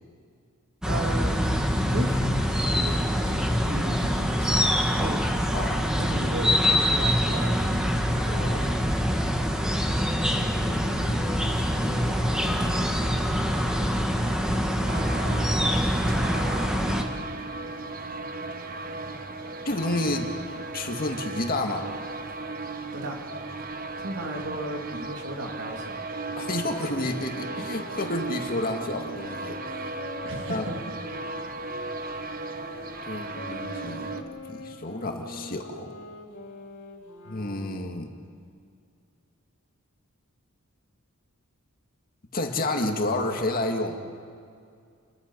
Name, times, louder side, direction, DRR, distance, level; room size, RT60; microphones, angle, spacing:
sound 1, 0.8-17.0, equal, 5° right, 1.9 m, -25 dB
voice 1, 0.8-4.6 5.0-5.2 5.9-7.6 22.9-23.2 24.0-26.0 30.2-30.8, right 1 dB, 60° right, 2 dB, 2.7 m, -35 dB
voice 2, 5.5-5.8 8.3-8.8 10.7-13.1 19.7-20.3 20.7-21.9 26.4-29.6 30.5-30.8 33.1-34.1 34.5-35.9 37.3-38.1 42.3-44.0, left 2 dB, 40° left, 3 dB, 2.0 m, -31 dB
sound 2, 14.9-34.2, right 3 dB, 40° right, 1.3 m, -36 dB
sound 3, 26.2-31.9 32.6-37.9, left 2 dB, 55° left, 3.1 m, -44 dB
30.0 x 22.0 x 5.5 m, 2.3 s
head